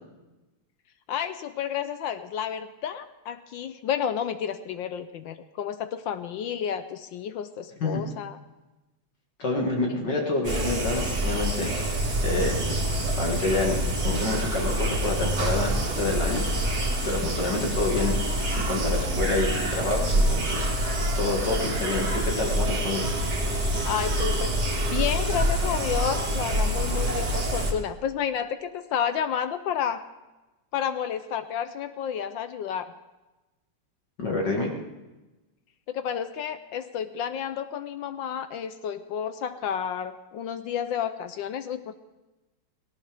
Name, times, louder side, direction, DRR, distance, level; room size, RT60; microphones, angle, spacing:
voice 1, 1.1-8.4 23.8-30.0 30.7-32.9 35.9-42.0, left 8 dB, 70° left, 11 dB, 1.2 m, -31 dB
voice 2, 9.4-11.7 12.2-12.8 13.2-16.5 17.0-18.1 18.6-20.7 21.2-23.1 34.2-34.7, left 3 dB, 55° left, 0 dB, 2.4 m, -28 dB
sound 1, 10.4-27.7, right 1 dB, 45° right, 2.3 m, -26 dB
18.5 x 17.5 x 3.5 m, 1.1 s
omnidirectional pair, 2.4 m